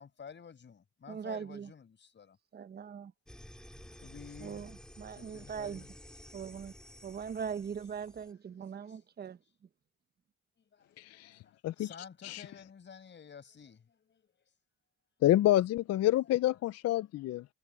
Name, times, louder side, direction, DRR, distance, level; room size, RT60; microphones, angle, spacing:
voice 1, 0.0-2.4 3.9-4.8 5.2-5.9 8.5-9.0 10.6-14.3, left 6 dB, 40° left, 6.8 m, -52 dB
voice 2, 1.1-1.7 2.5-3.1 4.4-5.8 6.3-6.7 7.0-9.4, right 7 dB, 35° right, 0.8 m, -40 dB
sound 1, 3.3-8.3, equal, ahead, 2.2 m, -52 dB
voice 3, 11.0-11.9 12.2-12.4 15.2-17.5, left 14 dB, 55° left, 0.4 m, -28 dB
cardioid pair, 145°, 30 cm